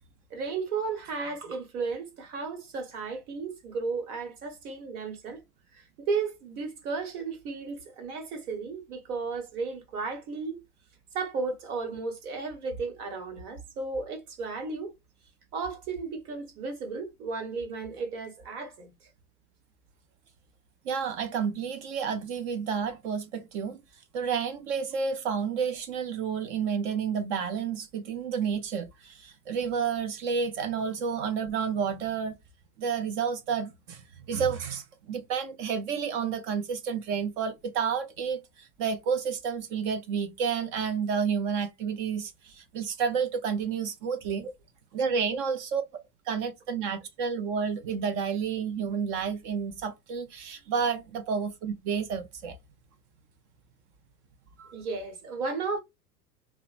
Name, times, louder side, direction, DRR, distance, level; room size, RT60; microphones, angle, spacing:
voice 1, 0.3-5.4 5.7-10.5 11.1-14.9 15.5-18.9 54.7-55.8, right 4 dB, 70° right, 1.3 m, -34 dB
voice 2, 20.9-23.8 24.1-32.3 32.8-34.0 34.3-38.4 38.8-44.5 44.9-45.8 46.3-52.6 54.6-54.7, right 6 dB, 50° right, 0.6 m, -30 dB
2.9 x 2.1 x 2.4 m
hypercardioid pair, 95°, 47 cm